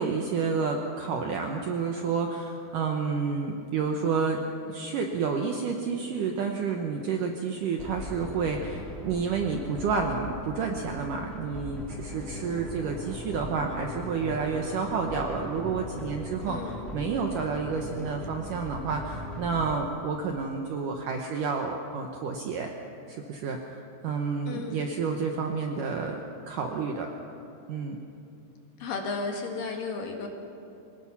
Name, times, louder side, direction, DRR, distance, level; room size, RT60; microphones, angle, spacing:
voice 1, 0.0-4.4 4.7-22.7 23.1-26.2 26.5-27.1 27.7-28.0, right 5 dB, 85° right, 2 dB, 1.8 m, -30 dB
sound 1, 7.8-19.7, left 1 dB, ahead, 1.3 m, -40 dB
Wind instrument woodwind instrument, 11.9-18.5, left 4 dB, 30° left, 2.3 m, -47 dB
voice 2, 16.5-16.9 24.5-25.0 28.8-30.3, left 4 dB, 60° left, 2 dB, 2.8 m, -34 dB
24.5 x 18.5 x 6.0 m, 2.7 s
omnidirectional pair, 5.4 m